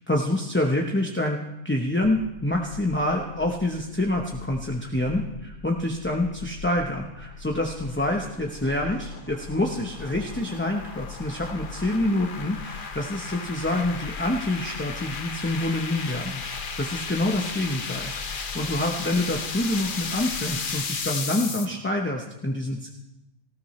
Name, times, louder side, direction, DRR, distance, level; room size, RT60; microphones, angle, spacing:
voice 1, 0.1-16.4 16.8-22.9, left 1 dB, 10° left, 0 dB, 0.7 m, -27 dB
sound 1, 2.0-20.7, left 4 dB, 90° left, 1.7 m, -43 dB
sound 2, 7.7-21.7, left 5 dB, 45° left, 0.9 m, -35 dB
18.5 x 14.5 x 3.2 m, 0.92 s
omnidirectional pair, 1.4 m